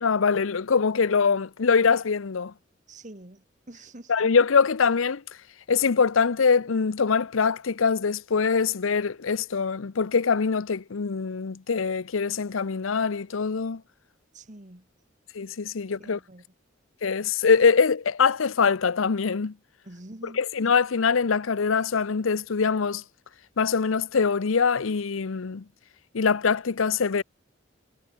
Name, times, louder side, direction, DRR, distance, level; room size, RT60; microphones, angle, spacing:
voice 1, 0.0-2.5 4.1-5.2 5.7-13.8 15.3-16.2 17.0-19.5 20.4-23.0 23.6-25.6 26.1-27.2, left 5 dB, 85° left, 0.7 m, -23 dB
voice 2, 2.9-4.1 14.3-14.9 16.0-16.5 19.9-20.4, right 1 dB, 35° right, 1.9 m, -46 dB
head